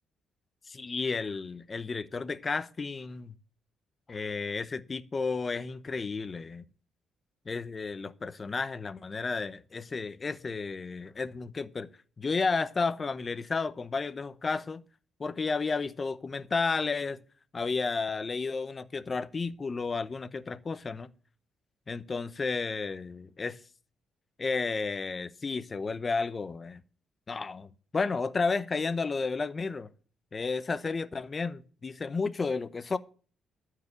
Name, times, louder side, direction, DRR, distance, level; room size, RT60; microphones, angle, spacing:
voice 1, 0.7-3.3 4.1-6.6 7.5-11.9 12.2-14.8 15.2-17.2 17.5-21.1 21.9-23.6 24.4-26.8 27.3-29.9 30.3-33.0, left 4 dB, 35° left, 0.8 m, -32 dB
13.5 x 4.8 x 8.1 m
cardioid pair, 90°, 0 cm